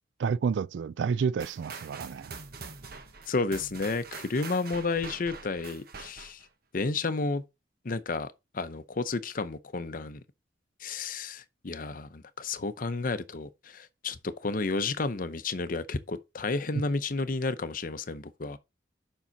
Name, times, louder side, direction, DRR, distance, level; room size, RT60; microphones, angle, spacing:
voice 1, 0.2-2.4, right 6 dB, 90° right, 0.3 m, -30 dB
sound 1, 1.4-6.5, right 4 dB, 55° right, 1.1 m, -44 dB
voice 2, 3.3-6.4 6.7-7.4 7.8-10.2 10.8-18.6, left 3 dB, 50° left, 0.7 m, -32 dB
7.3 x 5.5 x 3.9 m
head